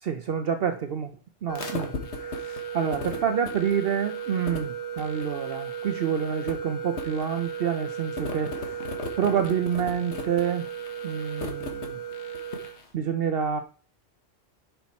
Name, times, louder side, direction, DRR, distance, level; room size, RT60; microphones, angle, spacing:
voice 1, 0.0-1.1 1.4-8.8 9.2-10.7 11.0-12.0 12.9-13.6, right 8 dB, 60° right, 7 dB, 0.9 m, -28 dB
sound 1, 1.5-12.8, right 3 dB, 85° left, 1.7 m, -34 dB
10.5 x 5.7 x 4.2 m, 0.38 s
omnidirectional pair, 1.1 m